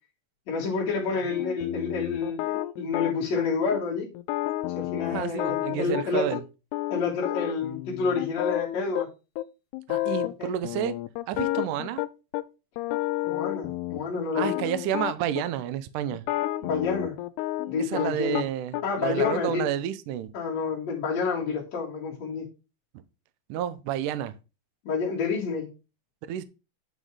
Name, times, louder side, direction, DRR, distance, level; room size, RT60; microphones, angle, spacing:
voice 1, 0.5-4.1 4.7-6.4 6.9-9.1 10.4-10.5 13.2-14.5 16.6-17.2 17.7-18.5 18.8-19.7 20.3-22.5 24.8-25.7, left 5 dB, 50° left, 2.4 m, -29 dB
sound 1, 1.3-3.4 3.7-3.8 4.2-6.4 6.7-9.1 9.4-9.5 9.7-10.3 10.6-12.4 12.8-15.5 16.1-18.5 18.7-19.3, left 16 dB, 85° left, 2.6 m, -31 dB
voice 2, 5.1-6.4 9.9-10.9 11.3-12.0 14.3-16.2 17.8-20.3 23.5-24.3 26.3-26.4, right 10 dB, 80° right, 1.8 m, -30 dB
9.4 x 4.0 x 4.8 m
omnidirectional pair, 4.6 m